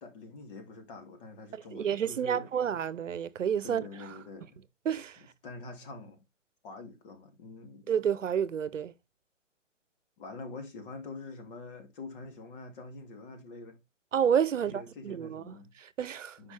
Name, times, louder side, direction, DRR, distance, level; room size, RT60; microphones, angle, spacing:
voice 1, 0.0-2.5 3.6-4.6 5.4-6.2 6.6-7.9 10.2-13.8 14.6-15.7 16.4-16.5, left 3 dB, 45° left, 2.5 m, -45 dB
voice 2, 1.5-3.9 4.8-5.2 7.9-8.9 14.1-16.5, right 8 dB, 75° right, 0.8 m, -30 dB
9.6 x 5.2 x 3.3 m
hypercardioid pair, 140°, 38 cm